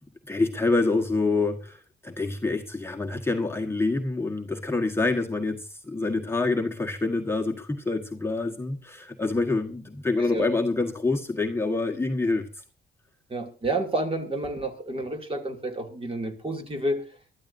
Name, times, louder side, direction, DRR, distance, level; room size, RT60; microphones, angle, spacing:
voice 1, 0.2-12.6, left 3 dB, 10° left, 1.5 m, -26 dB
voice 2, 13.3-17.0, right 1 dB, 30° right, 2.8 m, -30 dB
23.0 x 12.5 x 2.7 m
cardioid pair, 90°, 20 cm